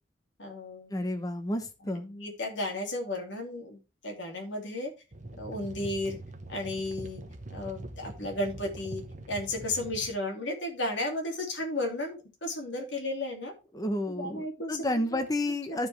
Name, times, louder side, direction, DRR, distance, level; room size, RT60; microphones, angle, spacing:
voice 1, 0.4-1.0 1.8-4.9 5.4-6.2 6.5-7.2 7.5-13.5 14.1-15.2 15.7-15.9, left 1 dB, 65° left, 0 dB, 2.8 m, -34 dB
voice 2, 0.9-2.0 13.7-15.9, left 1 dB, 20° left, 7 dB, 1.0 m, -31 dB
sound 1, 5.1-10.1, right 1 dB, 40° right, 1.0 m, -43 dB
13.0 x 5.0 x 3.3 m, 0.29 s
head